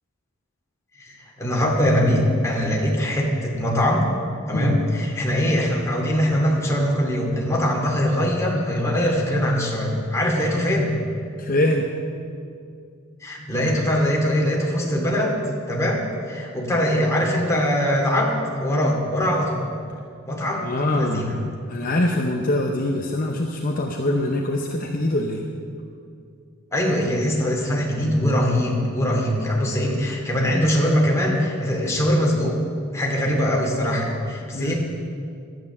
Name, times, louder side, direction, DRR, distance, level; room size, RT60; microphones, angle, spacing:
voice 1, 1.0-4.0 4.5-10.9 13.2-15.4 15.7-19.7 20.3-21.3 26.7-32.6 32.9-34.8, equal, 15° left, -2 dB, 2.4 m, -22 dB
voice 2, 4.5-4.9 11.4-11.9 20.6-21.3 21.7-25.5 34.5-34.7, left 1 dB, 45° left, 2 dB, 0.8 m, -23 dB
12.5 x 9.1 x 7.1 m, 2.4 s
head